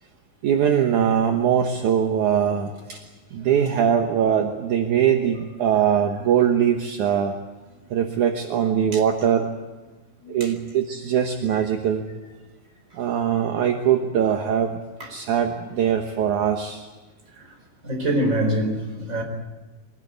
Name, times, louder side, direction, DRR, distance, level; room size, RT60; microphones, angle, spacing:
voice 1, 0.4-3.0 3.3-7.3 7.9-9.5 10.3-12.0 12.9-14.8 15.1-16.9, right 8 dB, 65° right, 2.1 m, -21 dB
voice 2, 17.8-19.2, right 1 dB, 20° right, 4.5 m, -24 dB
24.0 x 18.0 x 9.3 m
omnidirectional pair, 4.8 m